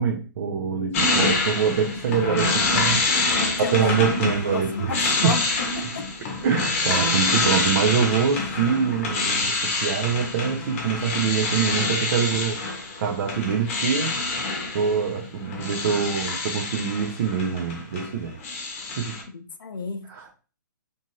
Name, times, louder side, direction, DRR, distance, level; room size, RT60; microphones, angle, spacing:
voice 1, 0.0-3.1 3.7-5.3 6.4-12.6 13.0-14.1 14.7-18.4 19.0-19.1 20.1-20.4, right 7 dB, 50° right, 0.5 m, -25 dB
sound 1, 0.9-18.1 18.4-19.2, left 3 dB, 40° left, 0.9 m, -26 dB
voice 2, 3.1-6.1 19.3-20.1, left 4 dB, 90° left, 0.6 m, -32 dB
2.6 x 2.5 x 2.9 m
hypercardioid pair, 145°, 11 cm